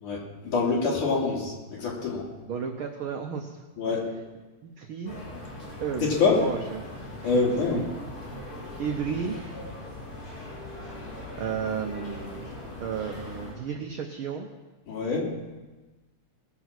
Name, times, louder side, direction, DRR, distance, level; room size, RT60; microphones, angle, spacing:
voice 1, 0.0-2.3 3.8-4.1 6.2-6.4 7.2-7.8 14.9-15.3, left 4 dB, 75° left, -4 dB, 4.3 m, -25 dB
voice 2, 2.4-4.0 4.6-5.2 5.8-6.8 7.2-7.4 7.7-7.9 8.8-9.4 11.4-12.5 12.8-14.5, right 7 dB, 85° right, 3 dB, 1.1 m, -33 dB
sound 1, 5.1-13.5, left 1 dB, 55° left, 4.7 m, -40 dB
20.0 x 7.3 x 5.9 m, 1.2 s
omnidirectional pair, 3.5 m